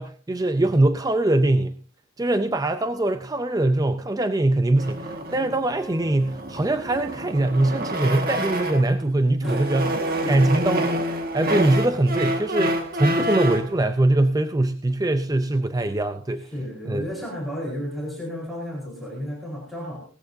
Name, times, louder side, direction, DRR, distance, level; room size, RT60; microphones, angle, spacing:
voice 1, 0.0-1.8 2.2-9.9 10.3-11.0 11.3-16.5 16.9-17.0, right 2 dB, 15° right, 9 dB, 0.5 m, -22 dB
sound 1, 4.8-9.0 9.4-13.7, right 1 dB, 45° right, 1.7 m, -28 dB
voice 2, 9.4-10.6 16.5-20.0, equal, ahead, -3 dB, 4.2 m, -32 dB
18.0 x 14.0 x 2.7 m, 0.40 s
head